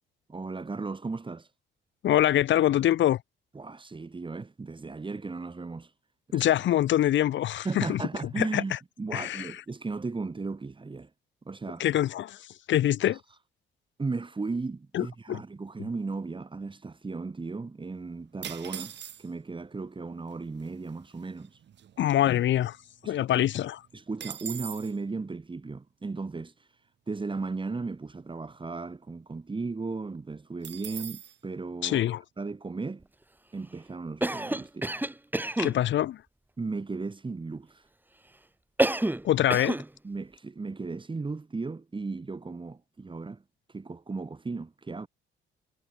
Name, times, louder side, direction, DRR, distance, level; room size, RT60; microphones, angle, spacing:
voice 1, 0.3-1.5 3.5-5.9 6.3-6.4 7.6-11.1 11.4-11.8 13.0-13.2 14.0-18.9 19.2-21.6 23.0-23.5 23.9-26.7 27.1-32.0 32.4-33.1 33.5-34.9 36.6-37.8 40.0-43.4 43.7-45.1, right 3 dB, 25° right, 3.4 m, -36 dB
voice 2, 2.0-3.2 6.3-8.0 8.4-8.8 9.1-9.6 11.8-12.4 12.7-13.2 14.9-15.4 22.0-22.8 23.0-23.8 31.8-32.2 35.6-36.2 39.2-39.8, left 12 dB, 70° left, 1.1 m, -24 dB
sound 1, 18.4-19.5 20.3-20.4 20.6-20.9 21.4-22.8 23.2-23.3 23.6-25.0 30.6-31.4, right 9 dB, 65° right, 6.9 m, -41 dB
Cough, 34.2-35.8 38.8-39.3 39.5-39.9, right 1 dB, 10° right, 2.2 m, -28 dB
cardioid pair, 90°, 20 cm